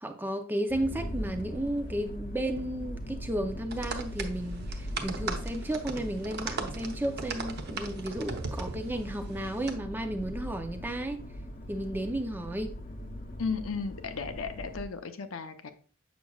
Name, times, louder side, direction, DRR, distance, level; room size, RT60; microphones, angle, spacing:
voice 1, 0.0-11.2 11.7-12.7, right 1 dB, 10° right, 0.5 m, -33 dB
sound 1, 0.7-14.9, equal, 45° left, 0.8 m, -40 dB
sound 2, 3.7-9.7, right 4 dB, 55° right, 0.8 m, -39 dB
voice 2, 13.4-15.7, left 5 dB, 80° left, 0.7 m, -35 dB
7.2 x 6.0 x 2.3 m
head